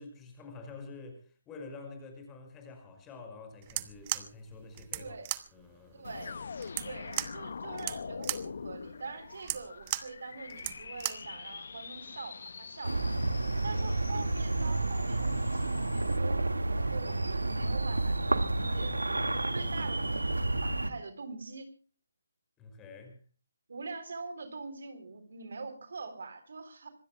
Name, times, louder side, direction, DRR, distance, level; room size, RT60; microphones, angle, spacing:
voice 1, 0.0-5.2 5.5-6.1 22.6-23.2, left 3 dB, 15° left, 5.4 m, -48 dB
sound 1, 3.6-11.3, right 15 dB, 25° right, 1.0 m, -38 dB
voice 2, 5.0-5.3 5.9-6.4 6.8-13.0 13.6-21.7 23.7-26.9, right 4 dB, 60° right, 3.6 m, -44 dB
sound 2, 6.0-16.2, left 5 dB, 55° left, 1.1 m, -44 dB
sound 3, 12.8-20.9, right 2 dB, 85° right, 1.8 m, -30 dB
26.0 x 20.0 x 2.2 m
figure-of-eight pair, 150°, 0 cm